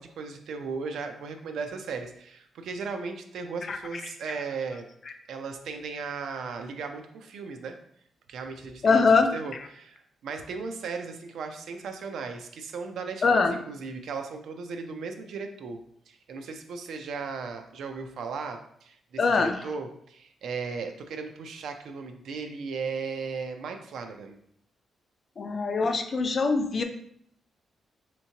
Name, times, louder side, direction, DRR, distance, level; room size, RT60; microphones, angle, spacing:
voice 1, 0.0-4.9 5.3-7.8 8.3-15.8 16.1-24.4, right 5 dB, 80° right, 6 dB, 0.4 m, -36 dB
voice 2, 8.8-9.3 13.2-13.5 19.2-19.6 25.4-26.8, left 4 dB, 35° left, 7 dB, 0.3 m, -22 dB
3.4 x 2.9 x 2.8 m, 0.68 s
wide cardioid pair, 155°, 0 cm